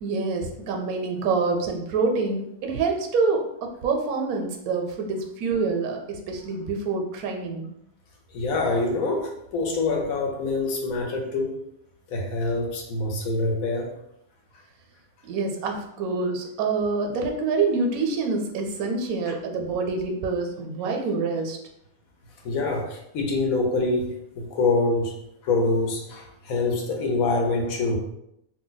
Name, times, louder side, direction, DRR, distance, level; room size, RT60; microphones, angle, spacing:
voice 1, 0.0-7.7 15.2-21.6, right 4 dB, 80° right, 3 dB, 1.0 m, -26 dB
voice 2, 8.3-11.6 12.1-13.9 22.4-25.2 25.4-28.0, left 3 dB, 75° left, 1 dB, 1.1 m, -25 dB
2.7 x 2.1 x 3.9 m, 0.79 s
omnidirectional pair, 1.5 m